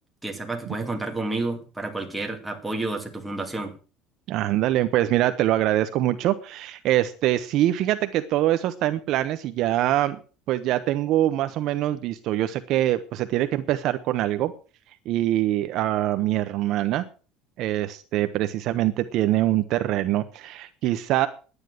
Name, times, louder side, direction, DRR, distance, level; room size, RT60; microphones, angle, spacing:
voice 1, 0.2-3.7, right 2 dB, 5° right, 2 dB, 2.4 m, -30 dB
voice 2, 4.3-10.2 10.5-14.5 15.1-17.0 17.6-21.3, right 14 dB, 50° right, 11 dB, 0.8 m, -24 dB
11.0 x 9.9 x 6.5 m, 0.37 s
cardioid pair, 165°, 0 cm